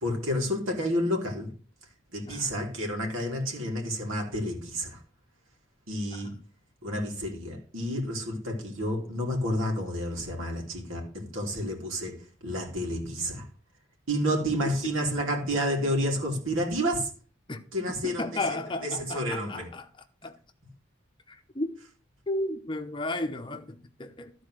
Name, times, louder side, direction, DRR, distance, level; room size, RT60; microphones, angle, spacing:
voice 1, 0.0-1.5 2.1-5.0 5.9-6.3 6.8-12.2 12.4-13.4 14.1-17.1 17.7-19.7, equal, 85° right, 3.1 m, -30 dB
voice 2, 18.0-19.9 20.2-20.4 21.3-21.8 22.3-24.3, left 2 dB, 25° left, 0.7 m, -34 dB
13.5 x 4.5 x 6.4 m
head